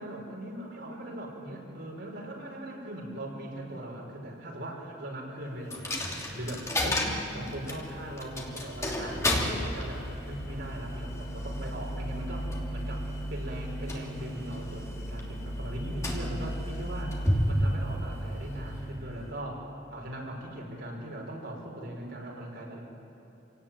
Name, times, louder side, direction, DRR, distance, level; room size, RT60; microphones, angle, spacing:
voice 1, 0.0-6.0 6.3-17.2 17.5-22.8, right 1 dB, 60° right, -1 dB, 5.5 m, -39 dB
Coin (dropping), 5.7-19.4, equal, 15° left, 2.8 m, -33 dB
28.0 x 17.5 x 9.1 m, 2.8 s
head